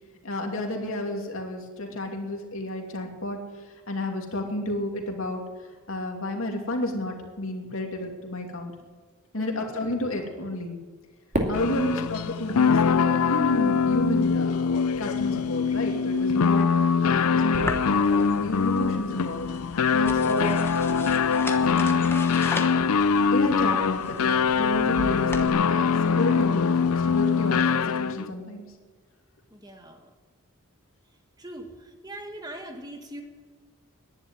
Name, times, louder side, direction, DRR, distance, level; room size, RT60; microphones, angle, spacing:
voice 1, 0.2-3.4 3.9-5.4 5.9-8.7 9.3-10.8 11.5-16.7 17.0-19.5 19.9-20.6 21.6-22.1 23.3-28.6, left 1 dB, 65° left, 2 dB, 2.7 m, -31 dB
voice 2, 9.3-9.6 11.6-11.8 16.5-16.8 20.1-20.3 29.5-30.1 31.4-33.2, right 1 dB, 15° right, 4 dB, 1.6 m, -42 dB
Fireworks, 11.3-13.6, right 1 dB, 35° right, 2.3 m, -32 dB
sound 1, 11.5-28.3, left 6 dB, 80° left, 0.5 m, -23 dB
sound 2, 17.5-25.5, left 2 dB, 10° left, 1.0 m, -38 dB
11.0 x 11.0 x 9.7 m, 1.4 s
head